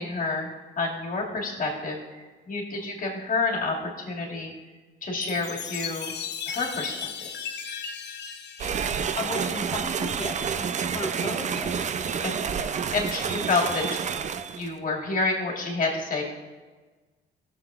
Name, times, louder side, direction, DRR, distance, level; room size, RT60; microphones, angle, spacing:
voice 1, 0.0-4.5 5.0-6.1 6.5-7.1 10.6-10.7 12.2-12.4 12.7-14.0 14.5-16.2, left 3 dB, 45° left, -2 dB, 2.2 m, -29 dB
Chime, 5.2-9.8, left 7 dB, 60° left, 0.8 m, -37 dB
sound 1, 8.6-14.7, right 7 dB, 35° right, 0.4 m, -29 dB
voice 2, 9.1-10.4 10.9-11.7, left 3 dB, 30° left, 1 dB, 1.3 m, -35 dB
14.5 x 7.0 x 2.4 m, 1.3 s
cardioid pair, 90°, 20 cm